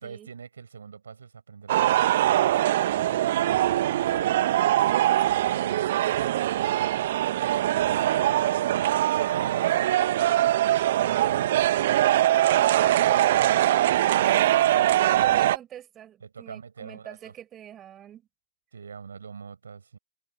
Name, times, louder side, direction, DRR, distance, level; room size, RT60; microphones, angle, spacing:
voice 1, 0.0-2.6 3.3-7.0 7.9-12.4 12.9-13.4 14.1-14.4 14.6-15.4 16.2-17.3 18.7-20.0, right 6 dB, 70° right, 5.5 m, -43 dB
sound 1, 1.7-15.6, right 13 dB, 55° right, 0.9 m, -22 dB
voice 2, 14.2-14.5 14.9-18.3, right 11 dB, 30° right, 6.6 m, -45 dB
figure-of-eight pair, 90°, 0 cm